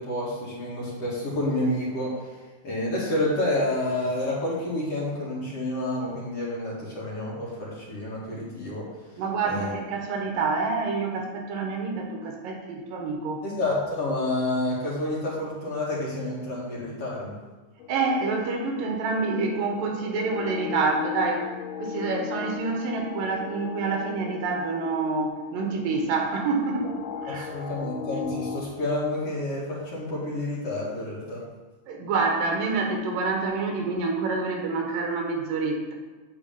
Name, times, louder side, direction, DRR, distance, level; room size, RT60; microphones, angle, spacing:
voice 1, 0.0-2.2 2.6-8.9 9.5-9.7 13.4-17.4 27.3-31.4, left 1 dB, 50° left, -6 dB, 2.8 m, -29 dB
voice 2, 9.2-13.4 17.9-21.5 21.8-27.5 31.9-35.9, right 4 dB, 80° right, 2 dB, 2.9 m, -27 dB
sound 1, 17.8-28.6, left 8 dB, 75° left, 2.2 m, -37 dB
9.0 x 4.9 x 7.0 m, 1.2 s
omnidirectional pair, 4.0 m